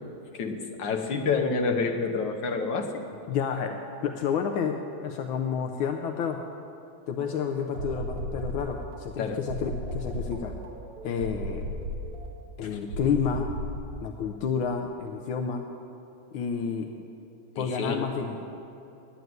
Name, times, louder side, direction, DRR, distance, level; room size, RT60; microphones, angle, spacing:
voice 1, 0.3-2.9 9.2-9.4 12.6-12.8 17.6-18.0, left 4 dB, 65° left, 2 dB, 1.7 m, -28 dB
voice 2, 3.3-6.4 7.1-10.6 11.0-11.7 12.6-13.5 14.0-15.7 16.3-16.9 17.6-18.5, left 6 dB, 80° left, 4 dB, 1.5 m, -30 dB
sound 1, 7.1-9.0 9.5-12.3 12.9-13.8, equal, 45° right, 2.1 m, -35 dB
10.0 x 9.2 x 9.4 m, 2.7 s
omnidirectional pair, 2.2 m